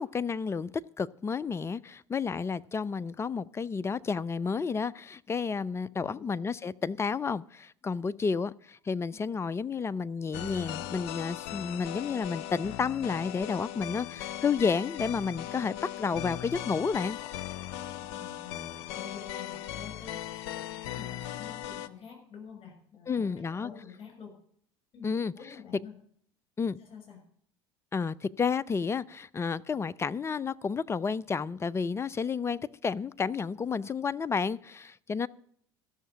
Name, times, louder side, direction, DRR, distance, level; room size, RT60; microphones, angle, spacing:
voice 1, 0.0-17.2 23.1-23.7 25.0-25.3 26.6-26.8 27.9-35.3, left 5 dB, 20° left, 18 dB, 0.5 m, -31 dB
sound 1, 10.3-21.9, left 13 dB, 65° left, 0.7 m, -38 dB
voice 2, 18.0-20.6 20.9-24.3 24.9-25.1 25.3-25.9 26.8-27.2, left 6 dB, 40° left, 3 dB, 6.8 m, -48 dB
14.0 x 6.7 x 8.5 m, 0.63 s
figure-of-eight pair, 65°, 14 cm